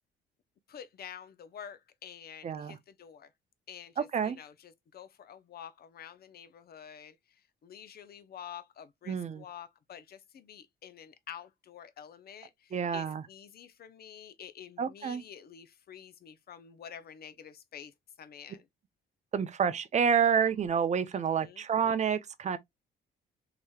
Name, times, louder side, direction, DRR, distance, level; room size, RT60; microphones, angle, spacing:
voice 1, 0.7-3.3 3.7-18.7 21.1-21.6, left 9 dB, 50° left, 0.6 m, -49 dB
voice 2, 2.4-2.8 4.1-4.4 9.1-9.4 12.7-13.2 14.8-15.2 19.3-22.6, right 7 dB, 35° right, 0.5 m, -28 dB
3.0 x 2.9 x 2.3 m
cardioid pair, 90°, 20 cm